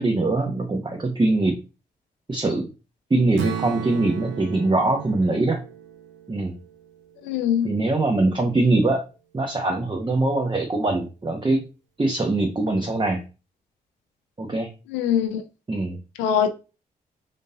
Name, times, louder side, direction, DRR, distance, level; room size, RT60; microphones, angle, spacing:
voice 1, 0.0-1.6 2.3-2.6 3.1-5.6 6.3-6.5 7.6-9.0 9.3-11.6 12.0-13.2 14.4-14.7 15.7-16.0, right 2 dB, 25° right, 1.0 m, -22 dB
Strum, 3.4-7.5, right 7 dB, 85° right, 0.6 m, -35 dB
voice 2, 7.2-7.7 14.9-15.4 16.2-16.5, left 9 dB, 90° left, 0.5 m, -22 dB
3.7 x 2.7 x 3.7 m
supercardioid pair, 45°, 18 cm